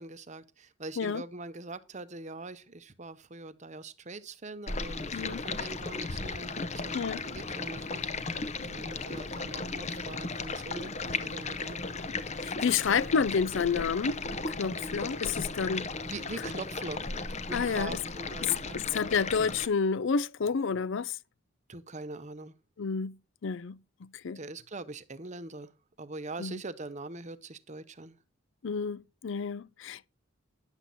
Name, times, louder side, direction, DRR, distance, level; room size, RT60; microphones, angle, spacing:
voice 1, 0.0-8.4 8.6-11.9 16.0-17.1 17.5-18.8 21.7-22.5 24.3-25.7 26.0-28.2, right 2 dB, 35° right, 0.8 m, -43 dB
Stream, 4.7-19.7, left 3 dB, 30° left, 0.7 m, -36 dB
voice 2, 12.4-14.1 14.6-15.9 17.5-18.0 18.4-21.2 22.8-23.2 23.4-24.4 26.4-26.6 28.6-30.1, left 6 dB, 55° left, 0.4 m, -30 dB
10.5 x 7.7 x 4.1 m
head